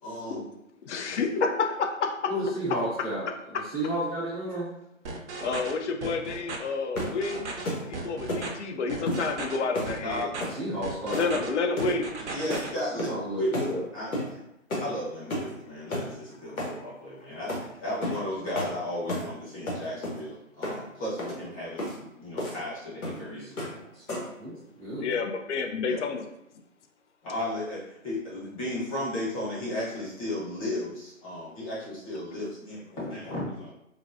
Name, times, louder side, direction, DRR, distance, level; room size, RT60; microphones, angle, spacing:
voice 1, 0.0-0.5 10.0-10.3 12.2-13.1 13.4-13.6 13.9-14.4 14.8-23.5 25.9-26.0 27.2-33.7, left 1 dB, 25° left, -8 dB, 1.1 m, -34 dB
voice 2, 0.8-1.5 1.9-2.2 5.4-7.5 7.8-10.3 11.1-12.2 25.0-26.2, left 4 dB, 60° left, 4 dB, 0.5 m, -29 dB
voice 3, 2.3-4.7 10.6-11.4 11.8-12.0 12.9-13.8 23.5-24.0 24.4-25.1, equal, 5° left, -14 dB, 0.8 m, -32 dB
sound 1, 5.0-5.7 6.0-6.6 7.0-7.6 7.9-8.5 8.9-9.6 9.9-10.4 10.8-11.5 11.8-12.7, right 3 dB, 55° right, 0.6 m, -36 dB
sound 2, 6.9-7.2 7.6-7.9 8.3-8.5 9.1-9.3 9.7-10.0 10.4-10.6 11.1-11.4 11.8-12.0 12.5-12.7 13.0-13.2 13.5-13.7 14.1-14.3 14.7-14.9 15.3-15.5 15.9-16.1 16.6-16.8 17.5-17.6 18.0-18.2 18.5-18.7 19.1-19.3 19.7-20.2 20.6-20.8 21.2-21.4 21.8-22.0 22.4-22.6 23.0-23.2 23.6-23.8 24.1-24.4, left 1 dB, 85° left, 1.2 m, -32 dB
3.9 x 2.0 x 2.6 m, 0.81 s
hypercardioid pair, 155°, 41 cm